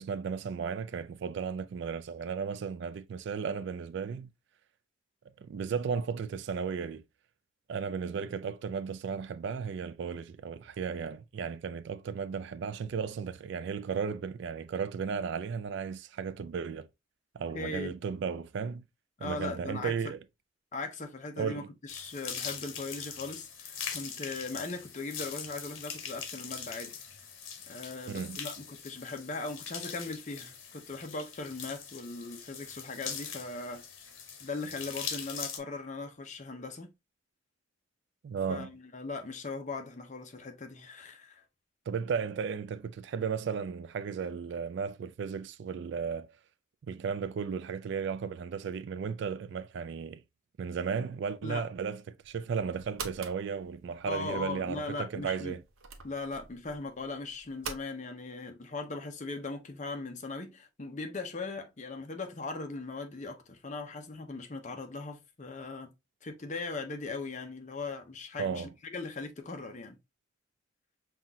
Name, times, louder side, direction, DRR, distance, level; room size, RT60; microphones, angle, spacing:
voice 1, 0.0-4.3 5.4-7.0 7.7-16.9 17.3-18.8 19.2-20.2 21.4-21.7 28.1-28.4 38.2-38.7 41.9-46.3 46.9-50.2 50.6-55.6 68.4-68.7, right 6 dB, 60° right, 0.3 m, -35 dB
voice 2, 17.5-17.9 19.2-19.9 20.7-26.9 27.7-33.8 34.4-36.9 38.5-41.4 51.4-51.7 54.1-55.6 56.0-65.9 66.2-70.0, left 3 dB, 35° left, 0.6 m, -39 dB
sound 1, 21.9-35.6, left 7 dB, 70° left, 0.9 m, -42 dB
sound 2, 52.2-57.8, right 5 dB, 85° right, 0.7 m, -46 dB
5.6 x 2.4 x 2.6 m
head